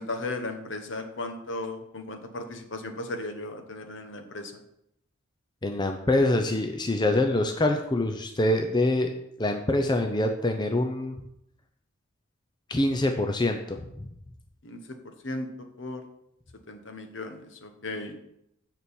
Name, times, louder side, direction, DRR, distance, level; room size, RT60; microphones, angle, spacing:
voice 1, 0.0-4.5 14.6-15.0 15.2-15.5 15.8-16.0 16.7-18.1, left 2 dB, 60° left, 6 dB, 1.1 m, -36 dB
voice 2, 5.6-9.1 9.4-11.2 12.7-14.1, left 1 dB, 20° left, 4 dB, 0.6 m, -25 dB
7.0 x 6.1 x 7.1 m, 0.80 s
head